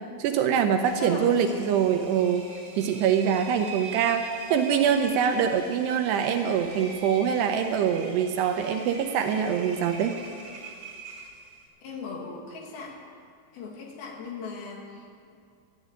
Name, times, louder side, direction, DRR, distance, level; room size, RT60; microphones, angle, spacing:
voice 1, 0.2-2.5 2.8-10.2, right 8 dB, 80° right, 6 dB, 2.7 m, -24 dB
voice 2, 0.8-1.7 11.8-13.0 13.5-15.3, left 4 dB, 65° left, 0 dB, 3.4 m, -39 dB
Engine, 0.8-11.7, right 4 dB, 40° right, 2.3 m, -43 dB
13.5 x 10.0 x 8.5 m, 2.5 s
omnidirectional pair, 5.2 m